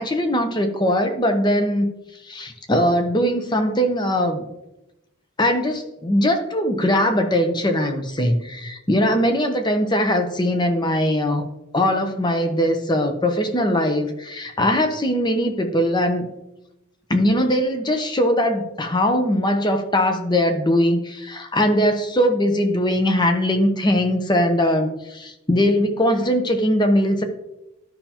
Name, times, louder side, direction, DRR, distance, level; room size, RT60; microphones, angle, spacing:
voice 1, 0.0-1.9 2.3-4.4 5.4-11.4 11.7-16.3 17.1-27.2, equal, 20° left, 6 dB, 0.8 m, -20 dB
12.0 x 5.5 x 2.9 m, 0.92 s
head